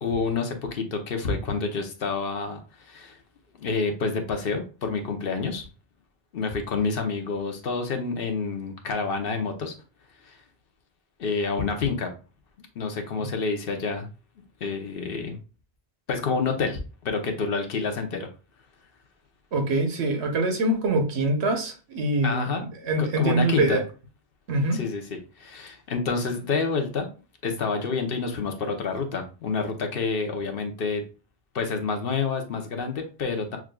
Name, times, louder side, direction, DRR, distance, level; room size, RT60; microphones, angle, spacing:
voice 1, 0.0-3.2 3.5-5.7 6.3-9.7 10.3-10.4 11.2-12.1 12.8-14.1 14.6-15.4 16.1-18.3 22.2-22.6 23.0-23.8 24.7-27.1 27.4-31.0 31.5-33.6, left 4 dB, 65° left, 0.9 m, -28 dB
voice 2, 19.5-23.8 24.5-24.8, right 2 dB, 90° right, 1.2 m, -24 dB
6.0 x 2.4 x 2.2 m
omnidirectional pair, 1.1 m